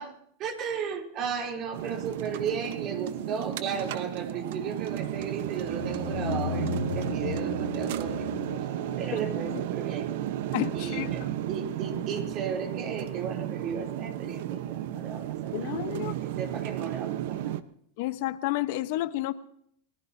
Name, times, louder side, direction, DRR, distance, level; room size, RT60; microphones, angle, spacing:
voice 1, 0.0-8.3 9.0-10.1 10.7-15.8 16.0-17.5, right 6 dB, 40° right, 3 dB, 3.3 m, -35 dB
sound 1, 1.7-17.6, right 12 dB, 70° right, 1.0 m, -33 dB
sound 2, 5.7-10.3, left 10 dB, 90° left, 0.6 m, -36 dB
voice 2, 10.5-11.3 15.5-16.1 18.0-19.3, left 16 dB, 65° left, 12 dB, 1.0 m, -31 dB
29.5 x 17.5 x 2.8 m, 0.69 s
supercardioid pair, 125°, 0 cm